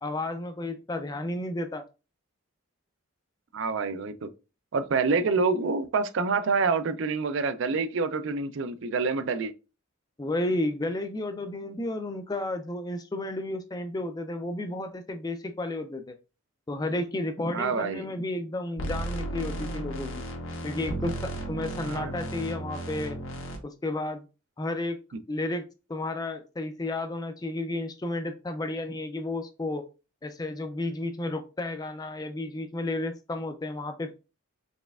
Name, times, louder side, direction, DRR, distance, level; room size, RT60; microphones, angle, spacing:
voice 1, 0.0-1.8 5.1-5.2 10.2-16.1 16.7-20.2 20.6-23.2 23.6-24.3 24.6-25.0 25.3-25.6 25.9-29.9 30.2-34.1, left 2 dB, 20° left, 0.3 m, -32 dB
voice 2, 3.5-4.3 4.7-9.5 17.5-18.1 21.9-22.1, right 4 dB, 60° right, 0.4 m, -27 dB
sound 1, 18.8-23.6, right 1 dB, 70° left, 0.9 m, -34 dB
4.2 x 3.2 x 2.3 m
head